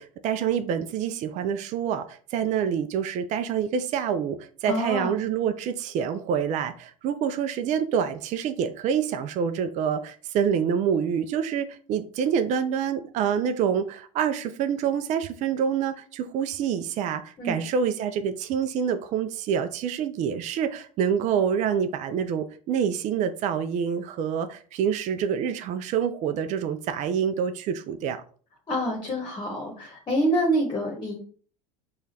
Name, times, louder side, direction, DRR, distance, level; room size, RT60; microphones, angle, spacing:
voice 1, 0.0-28.2, right 7 dB, 40° right, 0.4 m, -27 dB
voice 2, 4.7-5.1 17.4-17.6 28.7-31.2, right 1 dB, 25° left, 1.1 m, -26 dB
4.8 x 2.4 x 2.8 m
hypercardioid pair, 95°, 18 cm